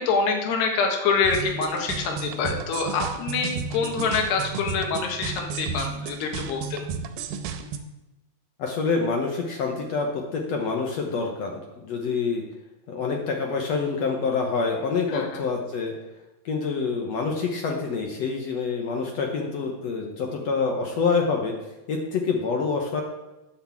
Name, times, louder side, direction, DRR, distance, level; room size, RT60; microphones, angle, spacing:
voice 1, 0.0-6.9 15.1-15.5, left 4 dB, 90° left, 3 dB, 3.6 m, -26 dB
sound 1, 1.2-7.8, right 5 dB, 90° right, 2.7 m, -33 dB
voice 2, 8.6-12.4 12.9-15.9 16.4-21.5 21.9-23.0, left 4 dB, 70° left, 1 dB, 1.5 m, -26 dB
10.0 x 6.6 x 7.3 m, 1.0 s
omnidirectional pair, 4.6 m